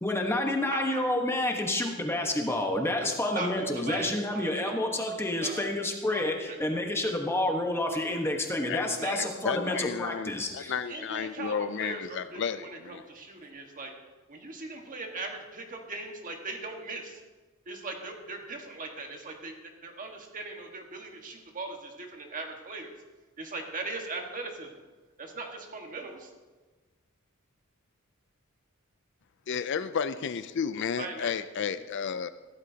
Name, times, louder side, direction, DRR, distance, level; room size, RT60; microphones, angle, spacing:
voice 1, 0.0-11.0, left 1 dB, 10° left, 2 dB, 1.2 m, -29 dB
voice 2, 0.7-1.0 3.4-3.5 3.9-5.1 5.4-5.7 6.1-6.6 9.0-9.3 9.7-9.8 10.9-13.9 14.3-17.2 17.7-22.9 23.4-24.7 25.2-26.3 31.0-31.3, right 3 dB, 40° right, 2 dB, 1.6 m, -39 dB
voice 3, 8.7-13.0 29.5-32.3, left 7 dB, 55° left, 12 dB, 0.4 m, -32 dB
15.0 x 13.5 x 2.8 m, 1.3 s
head